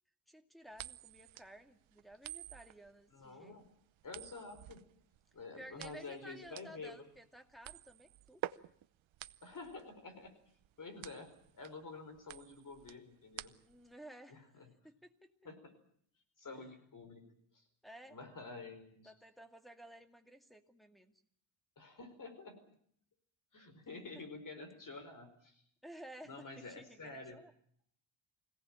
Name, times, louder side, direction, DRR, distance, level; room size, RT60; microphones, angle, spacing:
voice 1, 0.3-3.6 5.5-8.4 13.6-14.4 14.8-15.3 17.8-18.2 19.0-21.2 24.1-24.2 25.8-27.5, right 1 dB, ahead, 6 dB, 2.2 m, -55 dB
sound 1, 0.7-13.9, right 13 dB, 90° right, 0.9 m, -49 dB
voice 2, 3.1-3.6 4.0-4.8 5.3-7.0 9.4-10.3 10.8-13.6 14.3-14.7 15.4-15.7 16.4-17.2 17.5-17.6 18.1-19.1 21.8-22.6 23.5-25.6 26.2-27.4, left 3 dB, 45° left, 8 dB, 4.9 m, -49 dB
25.0 x 17.5 x 8.9 m, 0.64 s
cardioid pair, 120°, 45 cm